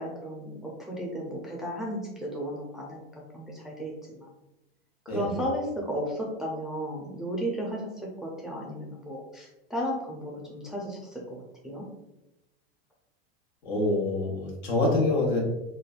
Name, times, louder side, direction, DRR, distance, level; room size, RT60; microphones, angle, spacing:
voice 1, 0.0-3.9 4.2-4.3 5.1-11.9, equal, ahead, -3 dB, 0.5 m, -34 dB
voice 2, 13.6-15.4, left 2 dB, 75° left, -2 dB, 1.1 m, -26 dB
3.3 x 2.1 x 2.4 m, 0.94 s
hypercardioid pair, 105°, 31 cm